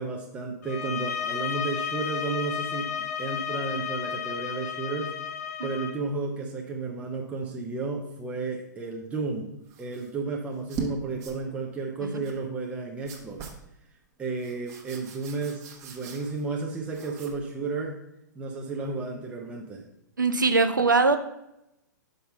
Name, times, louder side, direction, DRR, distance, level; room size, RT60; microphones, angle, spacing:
voice 1, 0.0-2.9 3.2-5.1 5.6-9.5 9.8-13.5 14.2-18.0 18.4-19.8, right 3 dB, 10° right, 0 dB, 0.7 m, -32 dB
sound 1, 0.6-6.0, left 8 dB, 55° left, 0.8 m, -33 dB
sound 2, 9.7-10.1 10.5-10.9 11.2-11.4 12.2-12.4 13.0-13.6 14.4-16.5 16.9-17.5, right 5 dB, 30° right, 1.1 m, -40 dB
voice 2, 20.2-21.2, right 4 dB, 80° right, 8 dB, 0.6 m, -22 dB
5.6 x 5.4 x 5.4 m, 0.85 s
figure-of-eight pair, 110°, 10 cm